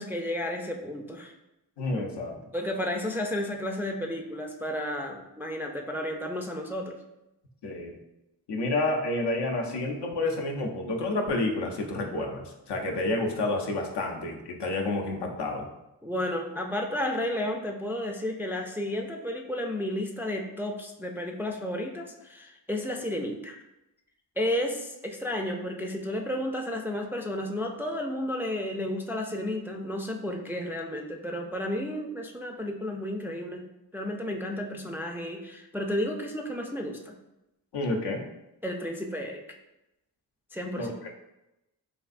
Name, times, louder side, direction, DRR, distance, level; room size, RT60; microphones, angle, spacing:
voice 1, 0.0-1.3 2.5-7.0 16.0-23.6 24.4-33.7 33.9-37.1 38.6-39.4 40.5-40.9, left 1 dB, 5° right, 2 dB, 0.3 m, -32 dB
voice 2, 1.8-2.4 7.6-8.0 8.5-15.7 37.7-38.2 40.8-41.1, left 2 dB, 70° left, 3 dB, 0.6 m, -29 dB
3.4 x 2.5 x 2.4 m, 0.92 s
cardioid pair, 50°, 43 cm